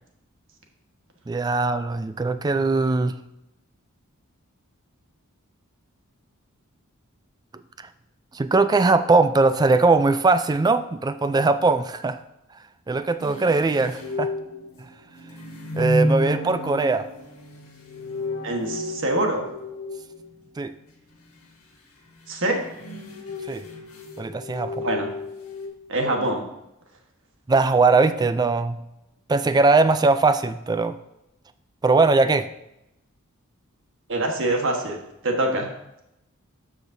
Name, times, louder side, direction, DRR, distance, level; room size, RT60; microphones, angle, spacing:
voice 1, 1.3-3.1 8.3-12.2 12.9-14.3 15.8-17.1 20.6-20.7 23.5-23.6 24.2-24.8 27.5-28.8 29.3-31.0 31.8-32.5, right 3 dB, 20° right, 11 dB, 0.3 m, -20 dB
sound 1, 13.2-20.5 22.4-25.7, left 1 dB, 80° left, 1.4 m, -31 dB
voice 2, 18.4-19.4 22.3-22.6 24.7-25.1 25.9-26.4 34.1-35.0 35.2-35.7, right 1 dB, 60° right, 2 dB, 1.3 m, -24 dB
13.0 x 5.0 x 2.7 m, 0.86 s
head